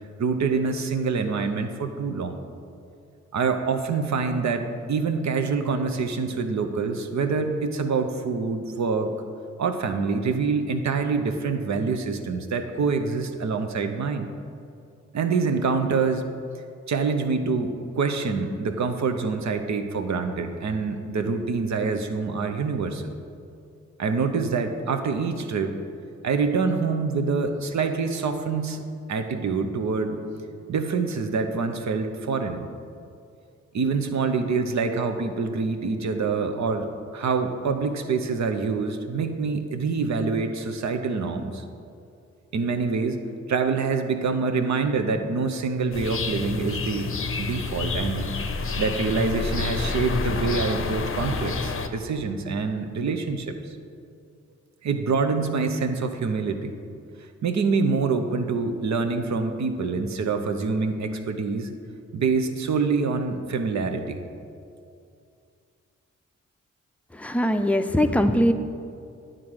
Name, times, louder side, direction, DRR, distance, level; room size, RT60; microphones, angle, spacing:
voice 1, 0.2-2.4 3.3-9.1 9.6-14.3 15.1-16.2 16.9-23.1 24.0-25.7 26.2-28.8 29.1-30.2 30.7-32.7 33.7-36.9 37.1-41.6 42.5-43.2 43.5-47.1 47.4-48.3 48.8-53.8 54.8-56.7 57.4-61.7 62.1-64.2, right 4 dB, 60° right, 6 dB, 0.8 m, -26 dB
sound 1, 45.9-51.9, left 4 dB, 40° left, 0.7 m, -28 dB
voice 2, 67.1-68.5, equal, 5° left, 7 dB, 0.5 m, -21 dB
9.3 x 3.8 x 6.2 m, 2.4 s
supercardioid pair, 45°, 31 cm